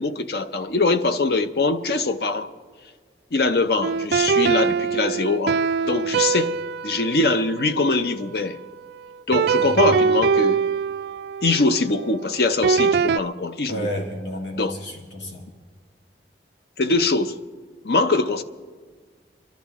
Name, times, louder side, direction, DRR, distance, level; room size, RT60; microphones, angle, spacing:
voice 1, 0.0-2.5 3.3-5.6 5.8-6.6 6.8-8.6 9.3-10.6 11.4-13.9 14.6-14.7 16.8-17.4 17.8-18.4, left 3 dB, 60° left, 0.6 m, -22 dB
sound 1, 3.8-8.7 9.3-13.2, right 5 dB, 60° right, 0.3 m, -23 dB
voice 2, 9.5-10.0 13.7-15.5, equal, 85° left, 1.7 m, -31 dB
26.0 x 12.0 x 3.6 m
head